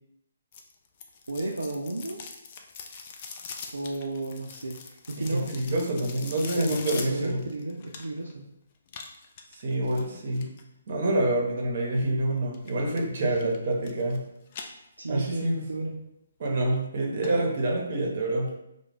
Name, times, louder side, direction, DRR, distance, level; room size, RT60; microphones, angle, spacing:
sound 1, 0.5-8.3 8.9-10.6 12.5-13.0 13.4-14.2 14.5-15.3 15.7-15.8 16.5-16.6 16.9-17.0 17.2-17.3 17.7-17.8, left 5 dB, 40° left, 0.3 m, -42 dB
voice 1, 1.3-2.2 3.7-5.8 6.5-8.4 13.2-13.5 15.0-16.0, right 2 dB, 85° right, 0 dB, 0.3 m, -33 dB
voice 2, 5.3-7.4 9.5-10.5 10.9-14.2 15.1-15.6 16.4-18.5, right 1 dB, 50° right, 0 dB, 0.7 m, -27 dB
2.3 x 2.1 x 3.2 m, 0.83 s
figure-of-eight pair, 140°, 0 cm